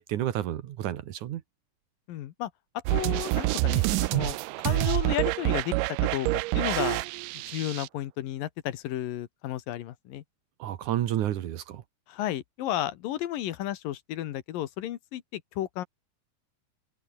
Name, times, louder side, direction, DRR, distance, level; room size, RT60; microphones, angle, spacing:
voice 1, 0.0-1.4 10.6-11.8, right 12 dB, 65° right, 2.4 m, -30 dB
voice 2, 2.1-2.5 2.9-3.8 4.1-5.7 6.1-6.3 6.5-7.0 7.5-10.2 12.1-15.9, left 13 dB, 75° left, 2.8 m, -33 dB
sound 1, 2.9-7.9, right 22 dB, 85° right, 1.9 m, -27 dB
open air
omnidirectional pair, 4.2 m